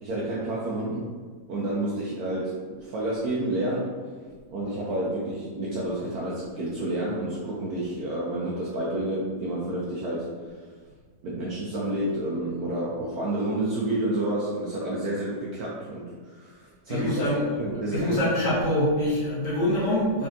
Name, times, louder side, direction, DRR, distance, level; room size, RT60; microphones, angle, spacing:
voice 1, 0.0-1.0 1.5-3.9 4.5-10.2 11.2-17.3 17.6-18.2, right 1 dB, 70° right, -5 dB, 1.0 m, -29 dB
voice 2, 16.9-17.4 17.9-20.3, left 1 dB, 55° left, -7 dB, 1.2 m, -25 dB
3.7 x 3.2 x 2.6 m, 1.6 s
omnidirectional pair, 1.9 m